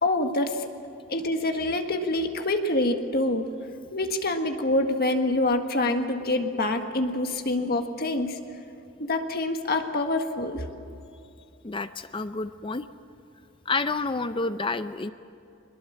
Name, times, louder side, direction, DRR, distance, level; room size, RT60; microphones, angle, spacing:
voice 1, 0.0-0.7 1.1-3.5 3.9-8.4 9.0-10.6, left 2 dB, 45° left, 5 dB, 1.7 m, -26 dB
voice 2, 11.6-12.9 13.7-15.1, left 3 dB, 25° left, 11 dB, 0.5 m, -29 dB
23.0 x 21.0 x 7.5 m, 2.6 s
head